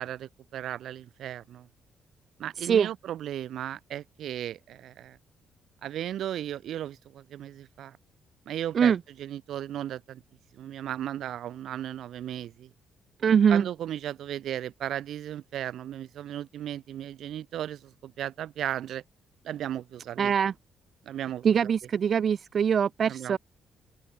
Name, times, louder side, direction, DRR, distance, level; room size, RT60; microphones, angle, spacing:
voice 1, 0.0-1.7 2.4-5.2 5.8-8.0 8.5-8.9 9.2-10.2 10.5-12.7 13.5-19.0 19.4-20.3 21.1-21.5 23.0-23.4, right 11 dB, 75° right, 1.0 m, -35 dB
voice 2, 13.2-13.7 20.2-20.5 21.4-23.4, right 7 dB, 55° right, 0.3 m, -23 dB
open air
cardioid pair, 90°, 0 cm